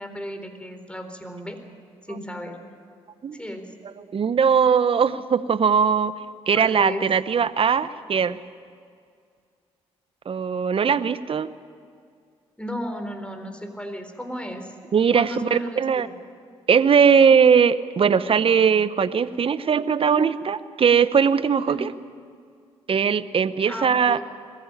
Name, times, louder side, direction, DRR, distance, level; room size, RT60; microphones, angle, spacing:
voice 1, 0.0-1.6 2.1-2.6 3.3-3.7 6.5-7.1 12.6-14.7 15.1-16.1 21.7-21.8 23.7-24.2, equal, 10° left, 6 dB, 4.0 m, -34 dB
voice 2, 4.1-6.1 6.5-8.4 10.3-11.5 14.9-16.1 16.7-21.9 22.9-24.2, right 6 dB, 50° right, 15 dB, 0.9 m, -20 dB
21.5 x 15.0 x 10.0 m, 2.2 s
supercardioid pair, 50°, 12 cm